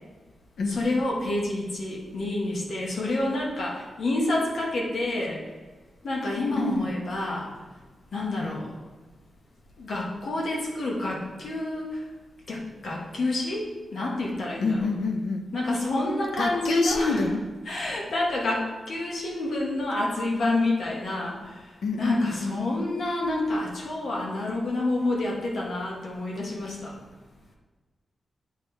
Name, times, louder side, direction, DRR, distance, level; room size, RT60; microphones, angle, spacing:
voice 1, 0.7-5.4 6.0-7.5 8.1-8.7 9.8-12.0 12.5-14.8 15.5-17.2 17.7-21.7 22.0-26.9, left 2 dB, 65° left, -3 dB, 1.7 m, -28 dB
voice 2, 6.6-6.9 8.4-8.6 14.6-15.4 16.4-17.5 21.8-22.6, left 3 dB, 85° left, 4 dB, 0.8 m, -27 dB
9.3 x 5.6 x 3.4 m, 1.3 s
wide cardioid pair, 130°, 0 cm